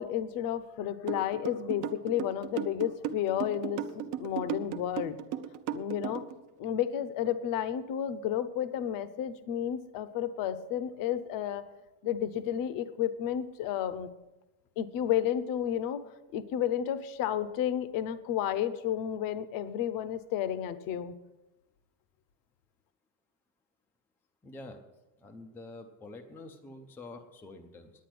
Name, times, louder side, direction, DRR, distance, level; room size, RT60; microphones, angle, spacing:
voice 1, 0.0-5.2 5.7-6.2 6.6-11.7 12.0-14.1 14.8-16.1 16.3-21.1, left 10 dB, 45° left, 14 dB, 0.7 m, -32 dB
sound 1, 1.1-6.3, right 10 dB, 40° right, 0.7 m, -35 dB
voice 2, 24.4-24.8 25.2-27.9, left 2 dB, 5° left, 4 dB, 0.4 m, -47 dB
10.5 x 8.9 x 7.6 m, 1.0 s
cardioid pair, 170°, 47 cm